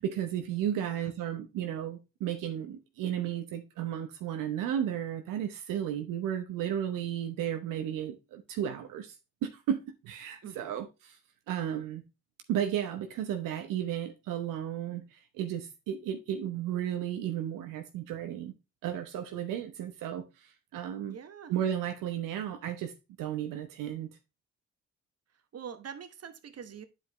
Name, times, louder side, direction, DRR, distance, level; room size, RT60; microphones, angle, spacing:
voice 1, 0.0-9.1 9.4-9.8 10.0-11.2 11.5-12.0 12.5-18.5 18.8-21.2 21.5-22.9 23.2-24.1, right 10 dB, 75° right, 0.8 m, -34 dB
voice 2, 0.8-1.1 10.4-10.7 21.1-21.5 25.5-26.8, right 7 dB, 50° right, 1.1 m, -45 dB
9.1 x 4.9 x 3.0 m
hypercardioid pair, 45°, 33 cm